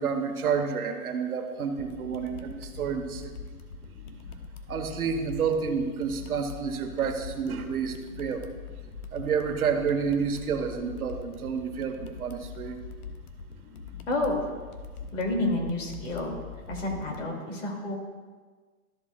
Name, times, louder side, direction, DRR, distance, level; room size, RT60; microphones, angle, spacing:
voice 1, 0.0-3.3 4.7-8.4 9.1-12.8, right 6 dB, 75° right, 5 dB, 1.3 m, -29 dB
sound 1, 1.8-17.2, left 5 dB, 85° left, 1.2 m, -43 dB
voice 2, 14.1-14.4 15.1-16.3 16.7-18.0, left 2 dB, 55° left, 0 dB, 2.7 m, -29 dB
13.5 x 7.3 x 2.4 m, 1.5 s
hypercardioid pair, 165°, 44 cm